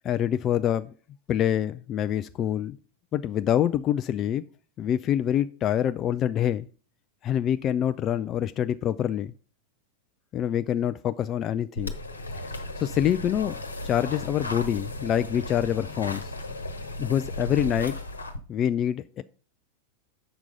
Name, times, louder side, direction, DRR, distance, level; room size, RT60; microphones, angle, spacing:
voice 1, 0.0-0.9 1.3-2.8 3.1-4.4 4.8-6.7 7.2-9.3 10.3-11.9 12.8-13.6 13.8-16.3 17.0-18.0 18.5-19.2, left 10 dB, 30° left, 0.4 m, -26 dB
aigua delta, 11.8-18.4, left 1 dB, 80° left, 1.1 m, -35 dB
7.9 x 6.0 x 5.0 m
figure-of-eight pair, 90°, 0 cm